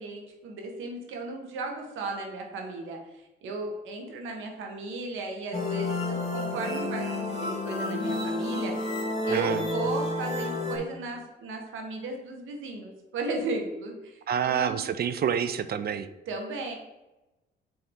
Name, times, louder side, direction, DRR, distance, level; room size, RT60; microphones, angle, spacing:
voice 1, 0.0-9.0 9.2-14.9 16.3-16.7, right 3 dB, 85° right, 2 dB, 1.4 m, -35 dB
sound 1, 5.5-10.8, left 2 dB, 30° left, 2.0 m, -30 dB
voice 2, 9.3-9.6 14.3-16.1, right 8 dB, 50° right, 12 dB, 0.5 m, -27 dB
7.6 x 3.8 x 3.6 m, 1.0 s
cardioid pair, 90°, 20 cm